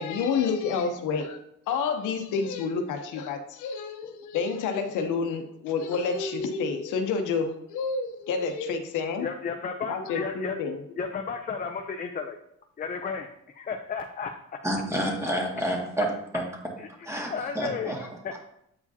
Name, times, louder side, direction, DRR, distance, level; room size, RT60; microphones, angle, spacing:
voice 1, 0.0-1.4 1.7-9.3 9.9-10.7, left 5 dB, 85° left, 5 dB, 0.9 m, -29 dB
voice 2, 9.2-10.6 11.0-12.4 12.8-14.3 16.8-16.9 17.3-18.4, left 5 dB, 30° left, 5 dB, 0.5 m, -33 dB
voice 3, 14.6-16.1 16.3-16.4 17.0-18.4, equal, 10° right, -2 dB, 1.9 m, -29 dB
8.4 x 4.8 x 2.8 m, 0.75 s
cardioid pair, 90°, 30 cm